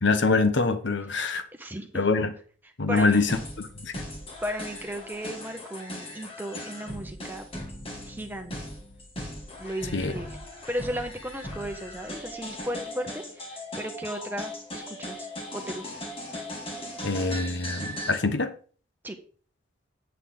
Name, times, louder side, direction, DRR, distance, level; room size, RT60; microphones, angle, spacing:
voice 1, 0.0-1.4 1.9-2.3 2.8-3.9 9.9-10.1 17.0-18.5, left 3 dB, 65° left, 1.0 m, -24 dB
voice 2, 1.5-2.0 2.9-3.4 4.4-7.5 8.0-8.7 9.6-10.4 10.7-15.3 15.5-16.0 19.0-19.2, equal, 10° right, 1.2 m, -35 dB
sound 1, 2.9-18.2, left 1 dB, 30° left, 2.1 m, -39 dB
8.4 x 8.2 x 3.8 m
head